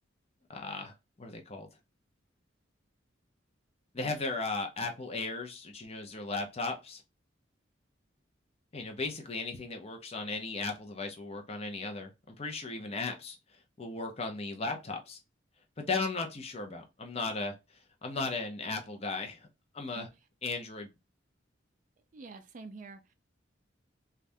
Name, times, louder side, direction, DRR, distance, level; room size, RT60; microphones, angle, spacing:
voice 1, 0.5-1.7 3.9-7.0 8.7-13.4 13.8-15.2 15.8-17.5 18.0-19.4 19.7-20.1 20.4-20.9, left 3 dB, 30° left, 0.6 m, -36 dB
voice 2, 22.1-23.1, right 3 dB, 40° right, 0.4 m, -47 dB
3.3 x 2.4 x 2.6 m
head